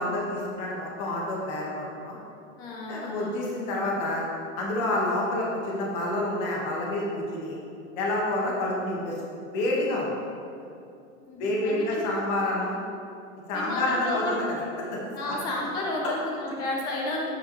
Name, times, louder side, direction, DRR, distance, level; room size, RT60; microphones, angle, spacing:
voice 1, 0.0-2.1 2.9-4.2 4.5-7.6 7.9-9.1 9.5-10.1 11.4-12.7 13.5-14.4 14.9-15.0 15.3-15.4, left 1 dB, 35° left, -3 dB, 1.7 m, -28 dB
voice 2, 2.6-3.4 11.2-12.0 13.5-14.4 15.1-17.3, left 2 dB, 10° left, -2 dB, 0.4 m, -32 dB
8.3 x 8.2 x 3.2 m, 2.5 s
supercardioid pair, 165°, 41 cm